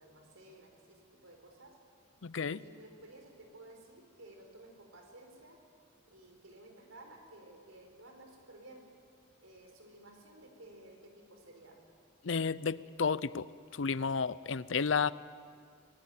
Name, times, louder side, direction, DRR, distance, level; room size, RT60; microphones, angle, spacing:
voice 1, 0.0-1.8 2.5-5.6 6.1-8.8 9.4-11.8, right 1 dB, 90° right, 3 dB, 4.7 m, -55 dB
voice 2, 2.2-2.6 12.2-13.5 13.7-15.1, left 5 dB, 70° left, 18 dB, 0.6 m, -32 dB
25.5 x 19.5 x 9.4 m, 2.2 s
head